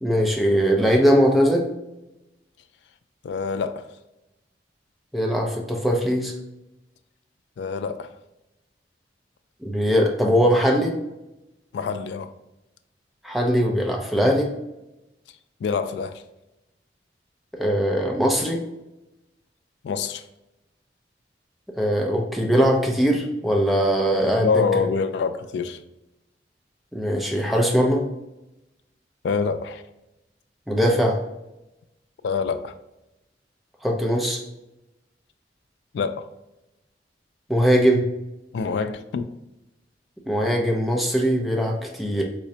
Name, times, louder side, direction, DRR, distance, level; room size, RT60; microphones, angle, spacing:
voice 1, 0.0-1.7 5.1-6.3 9.6-10.9 13.2-14.5 17.5-18.6 21.8-24.5 26.9-28.0 30.7-31.2 33.8-34.4 37.5-38.0 40.3-42.2, equal, ahead, 0.4 m, -20 dB
voice 2, 3.2-3.9 7.6-8.2 11.7-12.3 15.6-16.2 19.8-20.3 24.4-25.8 29.2-29.8 32.2-32.7 35.9-36.3 38.5-39.3, left 5 dB, 75° left, 0.3 m, -26 dB
4.8 x 2.1 x 2.7 m
head